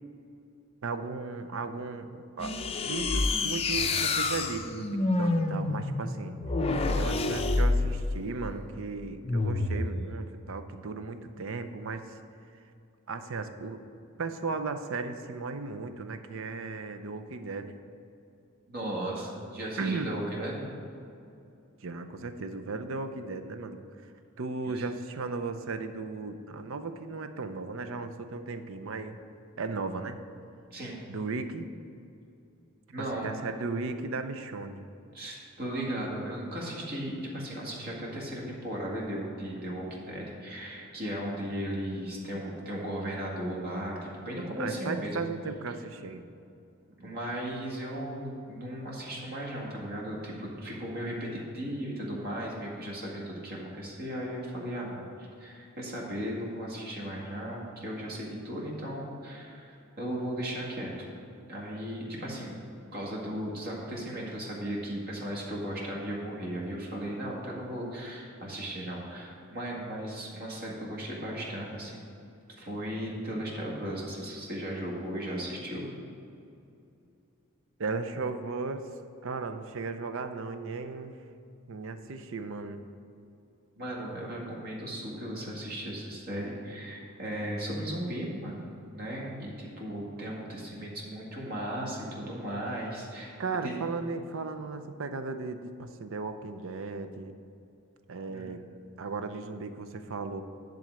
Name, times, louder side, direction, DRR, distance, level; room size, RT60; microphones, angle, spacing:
voice 1, 0.8-2.6 2.8-6.4 6.9-12.0 13.1-13.8 14.2-17.8 19.8-20.2 21.8-23.8 24.4-29.2 29.6-30.2 31.1-31.7 33.0-34.8 44.6-46.2 77.8-78.9 79.2-81.2 81.7-82.8 93.4-97.3 98.1-98.6 99.0-100.4, right 4 dB, 65° right, 9 dB, 0.6 m, -36 dB
sound 1, 2.4-8.3 9.2-9.9, left 3 dB, 30° left, 0.5 m, -28 dB
voice 2, 18.7-20.7 24.6-24.8 30.7-31.0 32.9-33.3 35.1-45.2 46.9-60.9 61.5-62.6 62.9-72.1 72.6-75.9 83.8-88.6 88.9-93.4 93.6-93.8 98.3-98.5, right 1 dB, 45° right, -3 dB, 1.9 m, -36 dB
10.5 x 3.8 x 7.5 m, 2.6 s
head